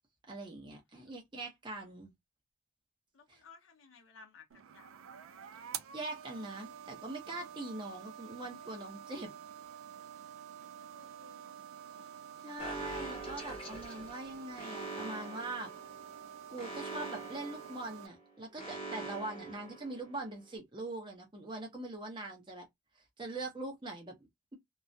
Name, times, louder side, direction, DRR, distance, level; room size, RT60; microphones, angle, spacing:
voice 1, 0.3-2.1 3.3-3.4 5.9-9.3 12.4-15.7 16.5-22.7 23.0-24.6, right 2 dB, 25° right, 0.7 m, -42 dB
voice 2, 3.1-5.1 10.6-11.5 12.0-12.2, left 4 dB, 75° left, 0.6 m, -59 dB
sound 1, 4.5-18.1, right 9 dB, 80° right, 0.3 m, -48 dB
Alarm, 12.6-20.4, right 2 dB, 25° left, 0.6 m, -44 dB
2.3 x 2.0 x 2.6 m
head